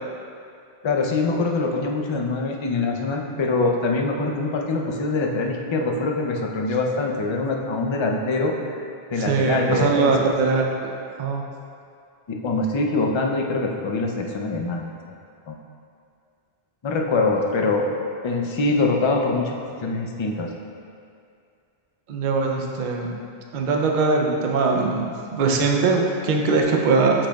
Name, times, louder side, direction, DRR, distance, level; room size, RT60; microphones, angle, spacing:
voice 1, 0.8-8.8 9.1-10.1 12.3-14.9 15.5-15.6 16.8-17.9 18.2-19.5 19.8-20.5, left 3 dB, 40° left, 1 dB, 0.4 m, -24 dB
voice 2, 9.2-10.6 11.2-11.4 22.1-23.2 23.5-27.3, right 4 dB, 55° right, 1 dB, 0.7 m, -21 dB
8.6 x 5.0 x 2.3 m, 2.4 s
omnidirectional pair, 1.0 m